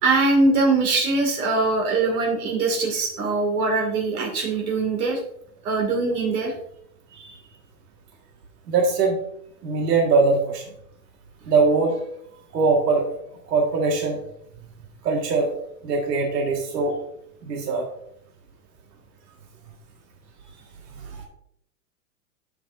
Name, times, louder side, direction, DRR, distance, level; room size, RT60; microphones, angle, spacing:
voice 1, 0.0-5.2 5.6-6.5 7.2-7.3, right 3 dB, 65° right, 1 dB, 2.4 m, -22 dB
voice 2, 8.7-9.2 9.6-10.6 11.5-12.0 12.5-13.1 13.5-14.2 15.0-15.5 15.8-17.0 17.4-17.9 20.9-21.2, right 4 dB, 90° right, 0 dB, 1.9 m, -21 dB
12.0 x 6.8 x 2.6 m, 0.72 s
supercardioid pair, 170°, 47 cm